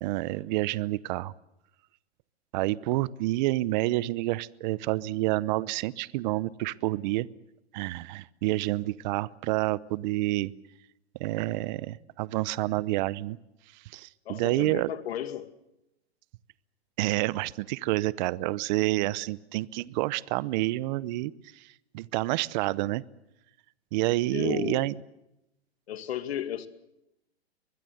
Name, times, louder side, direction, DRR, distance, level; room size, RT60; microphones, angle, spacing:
voice 1, 0.0-1.3 2.5-7.3 7.7-10.5 11.2-13.4 13.9-14.9 17.0-21.7 21.9-23.0 23.9-25.0, right 18 dB, 45° right, 0.8 m, -28 dB
voice 2, 14.3-15.5 24.3-24.9 25.9-26.7, left 10 dB, 70° left, 2.2 m, -34 dB
24.0 x 21.0 x 7.8 m
hypercardioid pair, 135°, 32 cm